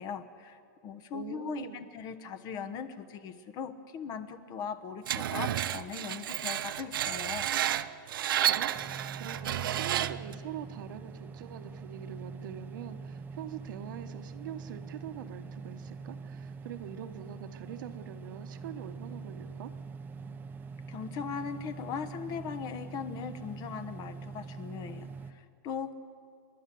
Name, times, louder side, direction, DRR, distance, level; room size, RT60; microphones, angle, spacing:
voice 1, 0.0-7.5 20.9-25.9, left 6 dB, 35° left, 11 dB, 1.2 m, -39 dB
voice 2, 1.1-1.8 8.4-8.7 9.2-19.7, right 9 dB, 70° right, 8 dB, 1.3 m, -43 dB
Screech, 5.1-10.3, right 11 dB, 85° right, 0.7 m, -31 dB
sound 1, 8.7-25.3, right 5 dB, 15° right, 0.8 m, -44 dB
29.5 x 11.5 x 7.7 m, 2.3 s
supercardioid pair, 150°, 11 cm